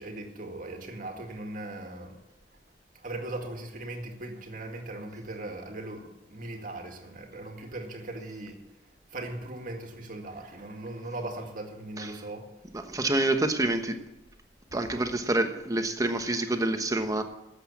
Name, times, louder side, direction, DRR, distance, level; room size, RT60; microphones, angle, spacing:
voice 1, 0.0-2.2 3.0-8.6 9.1-12.5 12.9-13.0 14.7-15.2, right 2 dB, 50° right, 3 dB, 2.1 m, -39 dB
voice 2, 12.7-14.0 14.7-17.2, right 2 dB, 20° right, 7 dB, 1.1 m, -27 dB
13.0 x 8.1 x 8.6 m, 0.97 s
head